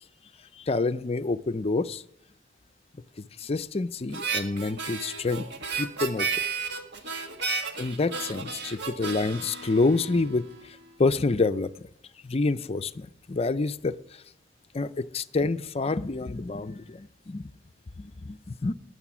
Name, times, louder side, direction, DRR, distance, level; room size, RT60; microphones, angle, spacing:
voice 1, 0.6-2.0 3.2-6.3 7.8-11.9 12.2-14.2 14.7-17.5 18.0-18.7, left 3 dB, 35° left, 0.5 m, -28 dB
Harmonica, 4.1-10.6, right 5 dB, 65° right, 1.7 m, -33 dB
14.5 x 10.5 x 6.1 m
head